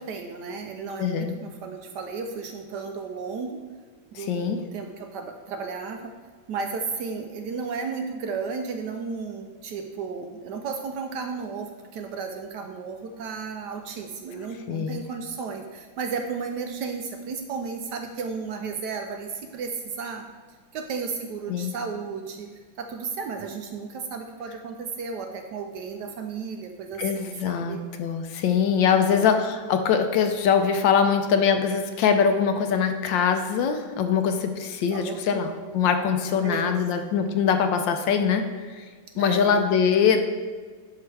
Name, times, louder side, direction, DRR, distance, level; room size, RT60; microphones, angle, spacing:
voice 1, 0.0-3.6 4.1-6.1 6.5-20.2 20.7-22.5 22.8-27.8 28.9-29.4 34.9-35.9 36.4-36.7 39.1-39.6, right 5 dB, 70° right, 4 dB, 1.0 m, -34 dB
voice 2, 1.0-1.3 4.1-4.6 14.7-15.0 21.5-21.7 27.0-38.8 39.2-40.2, left 7 dB, 75° left, 7 dB, 1.3 m, -23 dB
11.5 x 4.7 x 3.3 m, 1.5 s
omnidirectional pair, 2.2 m